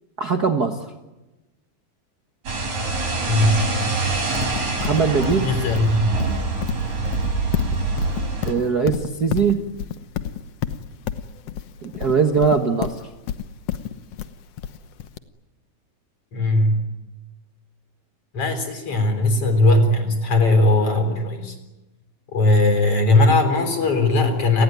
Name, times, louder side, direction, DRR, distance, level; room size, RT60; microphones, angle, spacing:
voice 1, 0.2-0.8 4.8-5.5 8.4-9.6 11.8-12.9, right 5 dB, 80° right, 4 dB, 0.8 m, -20 dB
sound 1, 2.5-8.5, right 3 dB, 50° right, 6.5 m, -25 dB
voice 2, 3.3-3.9 5.4-6.1 16.3-16.8 18.3-21.5 22.3-24.6, left 2 dB, 40° left, 7 dB, 4.7 m, -19 dB
Livestock farm animals working animals, 4.3-15.2, left 10 dB, 70° left, 1.5 m, -29 dB
30.0 x 19.0 x 9.5 m, 1.0 s
omnidirectional pair, 4.2 m